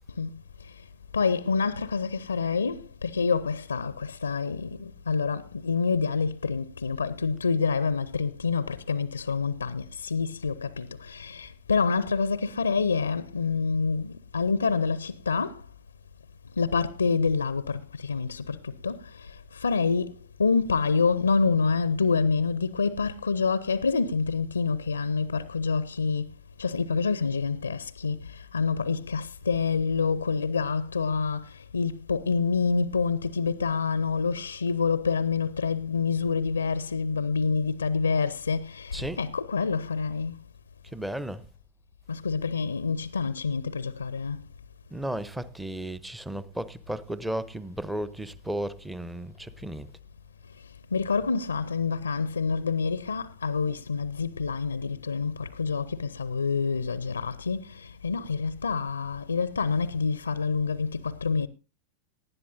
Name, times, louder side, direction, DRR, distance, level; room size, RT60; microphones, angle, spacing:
voice 1, 1.1-15.6 16.6-20.1 20.4-26.3 26.6-40.4 42.1-44.4 50.9-61.5, left 5 dB, 75° left, 0.5 m, -27 dB
voice 2, 38.9-39.2 40.9-41.5 44.9-49.9, right 1 dB, 5° right, 0.8 m, -34 dB
18.5 x 12.0 x 2.6 m
figure-of-eight pair, 90°, 0 cm